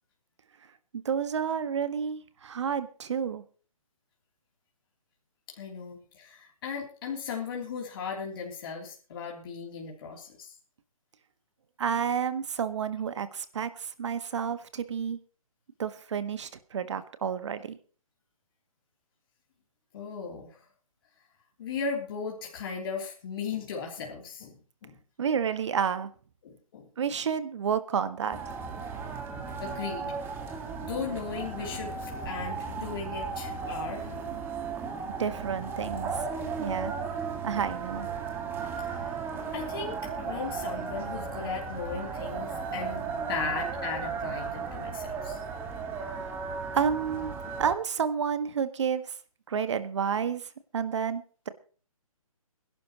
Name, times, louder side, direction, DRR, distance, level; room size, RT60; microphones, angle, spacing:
voice 1, 0.9-3.4 11.8-15.2 15.8-17.8 25.2-26.1 27.0-28.4 35.2-36.1 36.6-36.9 37.4-38.1 46.7-47.3 47.6-49.1 49.5-50.5 50.7-51.5, right 7 dB, 50° right, 11 dB, 1.6 m, -30 dB
voice 2, 5.5-10.6 19.9-20.6 21.6-25.0 26.4-26.9 29.6-30.1 30.8-34.1 39.0-39.2 39.5-45.4, left 5 dB, 40° left, -1 dB, 3.2 m, -37 dB
sound 1, 28.3-47.7, right 5 dB, 10° right, 1.8 m, -35 dB
22.5 x 11.5 x 3.0 m, 0.39 s
hypercardioid pair, 155°, 18 cm